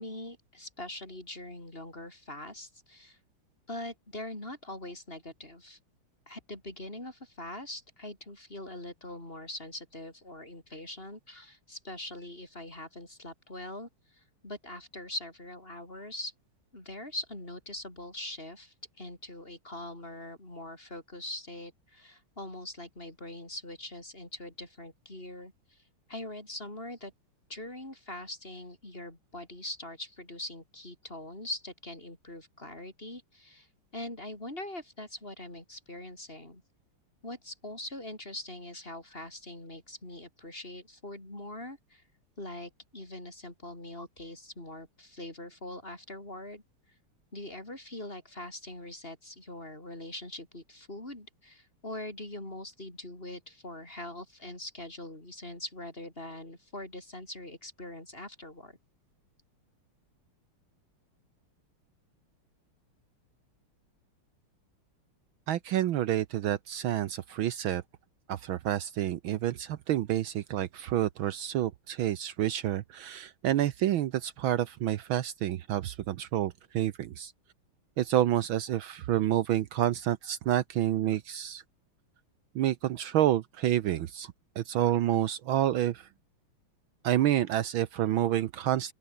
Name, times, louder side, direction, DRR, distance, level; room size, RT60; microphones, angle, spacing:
voice 1, 0.0-3.2 3.7-5.8 6.3-16.3 16.7-25.8 26.1-27.1 27.5-33.7 33.9-36.6 37.2-42.0 42.4-46.6 47.3-58.8, left 1 dB, 25° left, 6.2 m, -42 dB
voice 2, 65.5-67.8 68.3-77.3 78.0-81.6 82.5-86.1 87.0-88.9, right 12 dB, 70° right, 1.6 m, -29 dB
open air
omnidirectional pair, 2.4 m